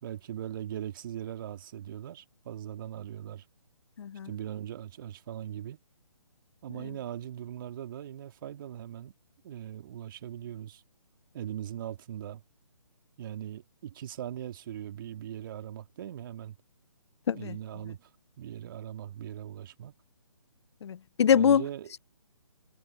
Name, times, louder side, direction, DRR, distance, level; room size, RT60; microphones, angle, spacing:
voice 1, 0.0-3.4 4.2-5.8 6.6-9.1 9.4-10.8 11.3-12.4 13.2-16.6 17.3-18.1 18.4-19.9 21.3-21.9, right 11 dB, 40° right, 2.6 m, -40 dB
voice 2, 4.0-4.3 17.3-17.6 20.8-21.6, left 8 dB, 55° left, 0.5 m, -24 dB
figure-of-eight pair, 150°, 17 cm